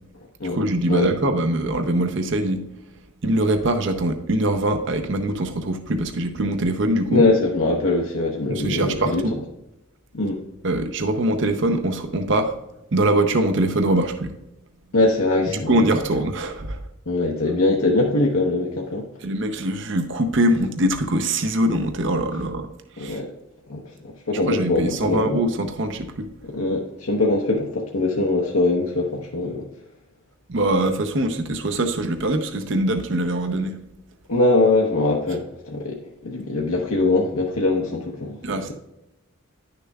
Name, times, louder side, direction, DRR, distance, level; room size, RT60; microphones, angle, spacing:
voice 1, 0.5-2.6 3.2-7.2 8.5-9.4 10.6-12.5 12.9-14.3 15.5-16.8 19.2-22.7 23.0-23.2 24.5-26.3 30.5-33.7 38.4-38.7, right 1 dB, 60° right, 6 dB, 0.6 m, -23 dB
voice 2, 7.1-9.2 10.1-10.4 14.9-15.8 17.1-19.1 23.0-23.3 23.7-25.4 26.5-29.7 34.3-38.6, left 2 dB, 85° left, -2 dB, 1.0 m, -22 dB
10.5 x 6.7 x 2.3 m, 0.92 s
head